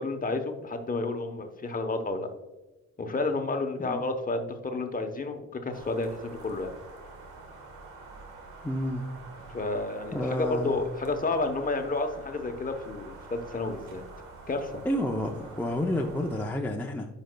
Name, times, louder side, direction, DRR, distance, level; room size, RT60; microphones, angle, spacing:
voice 1, 0.0-2.3 3.0-6.7 9.5-14.0 14.5-14.8, left 3 dB, 30° left, 6 dB, 0.9 m, -31 dB
sound 1, 5.7-16.5, right 3 dB, 85° right, 1.4 m, -47 dB
voice 2, 8.6-9.1 10.1-10.8 14.8-17.1, left 1 dB, 5° left, 1 dB, 0.5 m, -30 dB
9.2 x 5.1 x 2.2 m, 1.1 s
cardioid pair, 90°, 30 cm